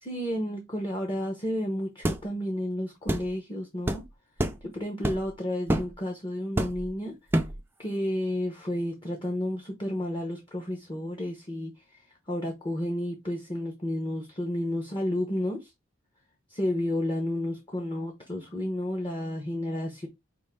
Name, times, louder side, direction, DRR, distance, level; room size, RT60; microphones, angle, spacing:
voice 1, 0.0-4.0 4.6-7.2 7.8-12.0 12.3-15.7 16.5-20.1, left 1 dB, 25° left, 0.8 m, -31 dB
sound 1, 2.0-2.2 3.1-3.3 3.9-4.0 4.4-4.6 5.0-5.3 5.7-5.9 6.6-6.9 7.3-7.6, right 1 dB, 10° right, 0.4 m, -27 dB
5.3 x 2.6 x 3.5 m
head